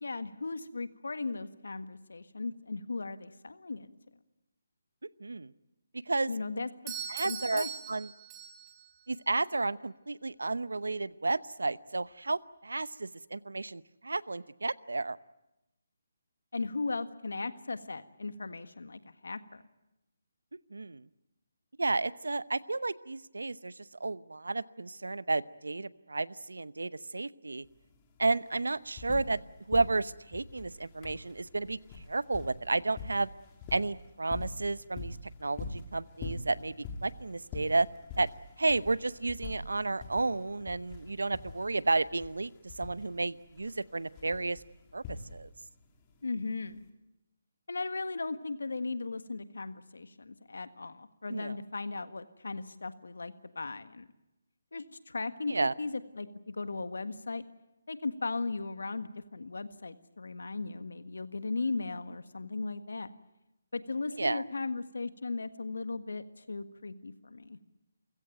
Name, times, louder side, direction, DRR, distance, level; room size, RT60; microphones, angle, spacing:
voice 1, 0.0-3.9 6.3-6.9 7.2-7.7 16.5-19.6 46.2-46.9 47.7-54.1 54.7-57.4 57.9-63.1 63.7-67.6, left 3 dB, 80° left, 11 dB, 1.6 m, -37 dB
voice 2, 5.2-5.5 6.1-6.3 7.1-8.1 9.1-15.2 20.7-21.1 21.8-27.7 28.2-29.4 29.7-33.3 33.7-36.7 37.0-37.9 38.2-38.3 38.6-44.6 44.9-45.5 51.3-51.6 55.5-55.7 64.2-64.4, right 3 dB, 85° right, 18 dB, 0.8 m, -32 dB
Doorbell, 6.9-8.9, right 8 dB, 20° right, 4.8 m, -41 dB
sound 1, 27.6-27.7 28.0-29.4 29.7-45.7 46.7-46.8, left 3 dB, 25° left, 3.2 m, -44 dB
29.0 x 16.5 x 9.1 m, 0.95 s
figure-of-eight pair, 155°, 0 cm